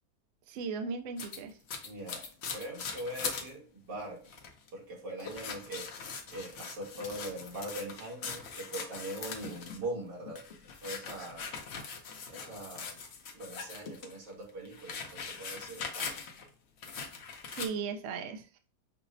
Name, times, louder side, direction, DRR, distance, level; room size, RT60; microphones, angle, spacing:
voice 1, 0.5-1.6 17.5-18.6, right 5 dB, 70° right, 5 dB, 0.7 m, -37 dB
sound 1, 1.2-3.5 3.9-4.0 4.3-4.7 5.2-9.8 10.3-14.1 14.5-16.5 16.8-17.7, left 5 dB, 65° left, 0.7 m, -41 dB
voice 2, 1.8-4.2 4.7-5.9 6.3-10.4 10.8-11.4 12.3-13.0 13.3-16.1, right 1 dB, 90° right, -3 dB, 2.1 m, -41 dB
5.7 x 2.0 x 2.5 m, 0.38 s
omnidirectional pair, 1.8 m